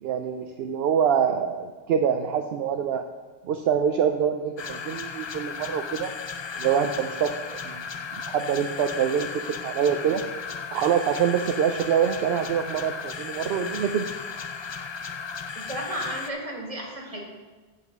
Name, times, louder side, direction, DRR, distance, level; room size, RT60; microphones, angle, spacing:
voice 1, 0.0-3.0 3.4-6.1 6.6-8.0 8.3-10.2 10.7-14.2, right 8 dB, 70° right, 6 dB, 0.8 m, -25 dB
sound 1, 4.6-16.3, left 5 dB, 50° left, 0.3 m, -35 dB
voice 2, 15.6-17.2, right 1 dB, 35° right, -1 dB, 1.9 m, -33 dB
8.0 x 7.6 x 5.2 m, 1.3 s
omnidirectional pair, 1.1 m